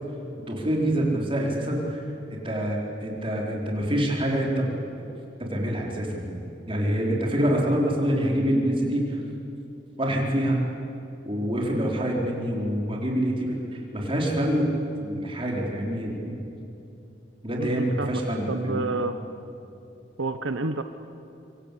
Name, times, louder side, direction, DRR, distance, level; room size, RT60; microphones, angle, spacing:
voice 1, 0.5-2.0 2.4-4.7 5.0-5.1 5.4-9.2 10.0-10.7 11.2-13.6 13.9-14.7 15.0-16.4 17.4-18.9, equal, 30° right, -1 dB, 4.6 m, -26 dB
voice 2, 17.6-18.2 18.5-19.2 20.2-20.8, right 3 dB, 85° right, 9 dB, 1.0 m, -29 dB
26.5 x 26.0 x 8.7 m, 2.8 s
head